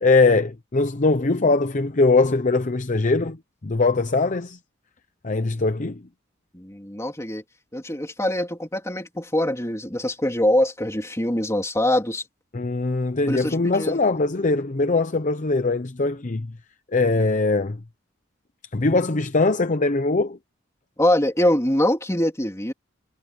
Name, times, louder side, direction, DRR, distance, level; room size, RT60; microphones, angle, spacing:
voice 1, 0.0-3.4 3.6-4.6 5.2-6.0 12.5-16.5 16.9-17.8 18.7-20.4, left 3 dB, 40° left, 0.7 m, -21 dB
voice 2, 6.5-7.4 7.7-12.2 13.3-14.0 21.0-22.7, left 1 dB, 15° left, 3.2 m, -23 dB
head